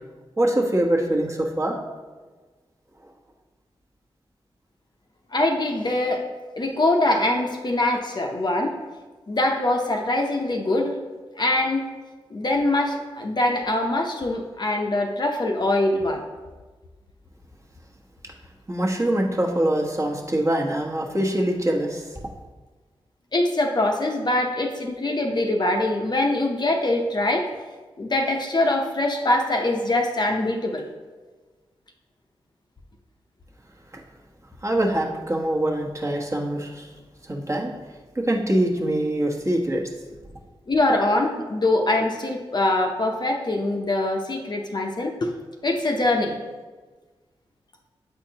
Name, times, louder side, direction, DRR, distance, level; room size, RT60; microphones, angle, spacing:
voice 1, 0.4-1.8 18.7-22.2 34.6-36.9 37.2-37.7 38.1-39.8, right 1 dB, 30° right, -1 dB, 1.2 m, -24 dB
voice 2, 5.3-6.3 6.6-8.8 9.3-11.0 11.4-11.9 12.3-16.2 23.3-27.5 28.0-30.8 40.7-45.3 45.6-46.4, left 2 dB, 45° left, 2 dB, 0.7 m, -23 dB
7.8 x 4.4 x 2.9 m, 1.3 s
cardioid pair, 50°, 10 cm